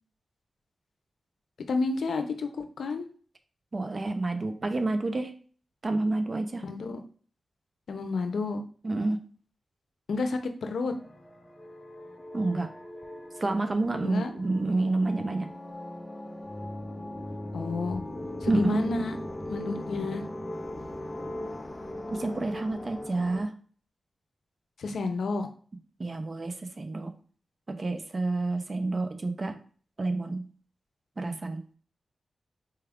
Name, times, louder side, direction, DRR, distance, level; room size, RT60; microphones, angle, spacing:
voice 1, 1.7-3.1 6.6-7.0 7.9-8.6 10.1-10.9 14.0-14.3 17.5-18.0 18.4-19.2 19.5-20.2 24.8-25.5, left 3 dB, 80° left, 6 dB, 0.5 m, -30 dB
voice 2, 3.7-5.3 5.8-6.6 8.8-9.2 12.3-12.7 13.4-15.5 18.5-18.9 22.1-23.5 26.0-27.1 27.7-29.6 30.0-30.5 31.2-31.6, right 2 dB, 35° right, 6 dB, 0.6 m, -29 dB
sound 1, 10.9-23.4, left 1 dB, 20° left, 0.4 m, -39 dB
4.4 x 2.3 x 3.4 m, 0.43 s
wide cardioid pair, 120°, 0 cm